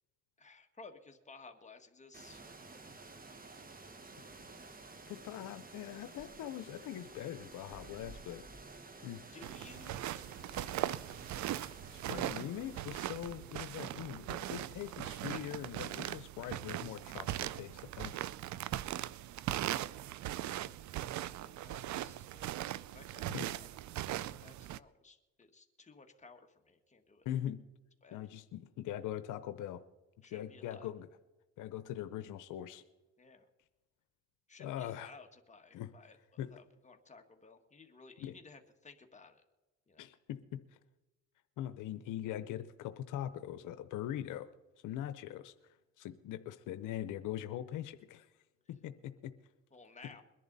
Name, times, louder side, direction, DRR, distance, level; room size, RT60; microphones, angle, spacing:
voice 1, 0.4-2.7 9.3-11.0 21.0-22.5 22.9-23.3 23.5-23.7 24.1-27.3 28.0-28.2 30.2-30.9 33.2-33.5 34.5-36.2 36.5-39.4 39.9-40.1 49.7-50.2, left 4 dB, 25° left, 4 dB, 1.8 m, -57 dB
sound 1, 2.1-13.8, right 3 dB, 30° right, 1.5 m, -52 dB
voice 2, 5.1-8.4 9.0-9.2 11.9-18.2 23.3-23.5 27.2-27.6 28.1-29.8 30.3-31.1 31.6-32.8 34.6-35.1 35.7-35.9 36.4-36.5 38.2-38.4 40.0-40.6 41.6-44.5 44.8-45.5 46.0-48.3 48.7-49.3, left 11 dB, 85° left, 11 dB, 0.8 m, -42 dB
sound 2, 9.4-24.8, right 13 dB, 70° right, 0.5 m, -40 dB
22.0 x 11.0 x 4.1 m, 1.1 s
cardioid pair, 90°, 30 cm